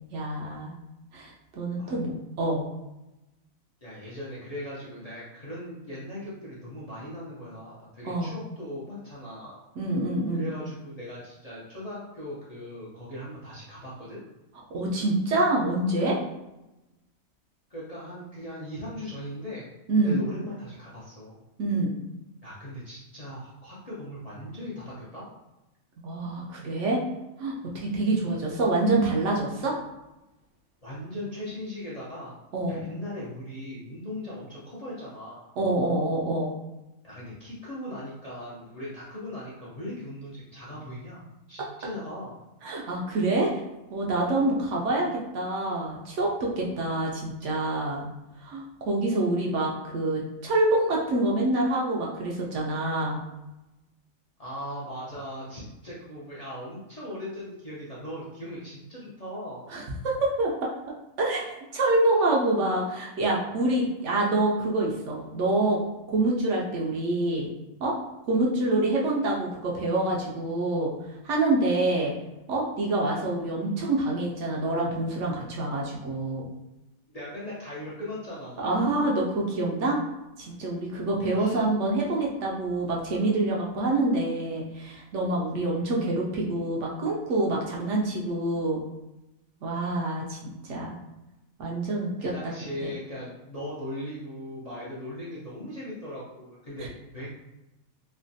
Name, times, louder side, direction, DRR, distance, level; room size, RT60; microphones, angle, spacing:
voice 1, 0.1-0.8 1.1-2.6 8.0-8.3 9.8-10.5 14.7-16.2 19.9-20.2 21.6-21.9 26.0-27.0 27.4-29.8 32.5-32.8 35.6-36.5 42.6-43.5 43.9-48.1 48.4-53.2 59.7-60.7 61.2-67.5 67.8-67.9 68.3-70.9 71.2-72.1 72.5-76.5 78.6-80.0 80.4-88.8 89.6-91.0 91.6-92.5 92.8-92.9, right 2 dB, 70° right, -2 dB, 0.8 m, -26 dB
voice 2, 3.8-9.6 10.3-14.2 17.7-19.7 20.0-21.4 22.4-25.3 30.8-32.3 32.7-35.5 37.0-42.3 54.4-59.7 77.1-78.8 81.2-81.6 92.2-97.3, left 1 dB, 40° left, -8 dB, 0.5 m, -39 dB
3.2 x 2.2 x 2.6 m, 0.98 s
omnidirectional pair, 1.4 m